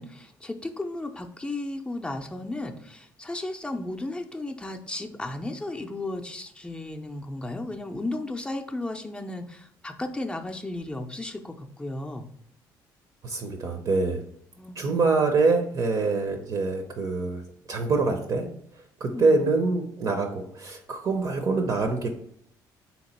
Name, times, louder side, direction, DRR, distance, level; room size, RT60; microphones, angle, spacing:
voice 1, 0.0-12.3 14.6-15.0 19.1-19.5, left 2 dB, 10° left, 4 dB, 0.5 m, -34 dB
voice 2, 13.2-14.2 14.8-17.4 17.7-18.5 19.0-22.1, right 3 dB, 50° right, 4 dB, 0.6 m, -25 dB
3.7 x 2.9 x 4.1 m, 0.67 s
cardioid pair, 90°, 8 cm